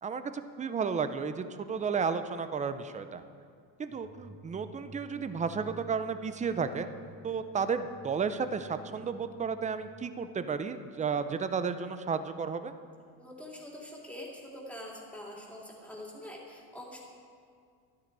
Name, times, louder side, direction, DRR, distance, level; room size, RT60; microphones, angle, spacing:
voice 1, 0.0-3.2 3.8-6.9 7.2-12.7, right 5 dB, 20° right, 11 dB, 0.6 m, -33 dB
sound 1, 3.9-9.8, right 2 dB, 40° right, 4.0 m, -53 dB
voice 2, 13.2-17.0, left 1 dB, 5° left, -3 dB, 2.7 m, -45 dB
13.5 x 12.0 x 4.7 m, 2.2 s
cardioid pair, 120°, 37 cm